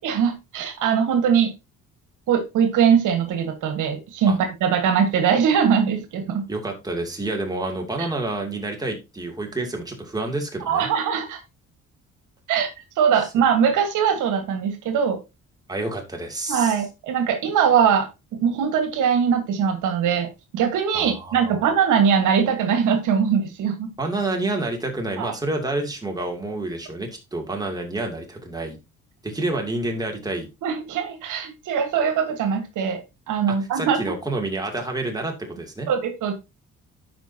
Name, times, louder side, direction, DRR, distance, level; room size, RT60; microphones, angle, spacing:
voice 1, 0.0-1.5 2.3-6.4 10.6-11.4 12.5-12.7 13.0-15.2 16.5-18.1 18.4-23.9 25.2-25.3 30.6-33.0 33.3-34.0 35.9-36.3, right 7 dB, 85° right, 8 dB, 1.5 m, -21 dB
voice 2, 6.5-10.9 15.7-16.8 20.9-21.7 24.0-28.8 29.2-30.5 33.5-35.9, right 2 dB, 10° right, 1 dB, 2.6 m, -28 dB
13.0 x 5.1 x 2.8 m, 0.25 s
cardioid pair, 90°, 30 cm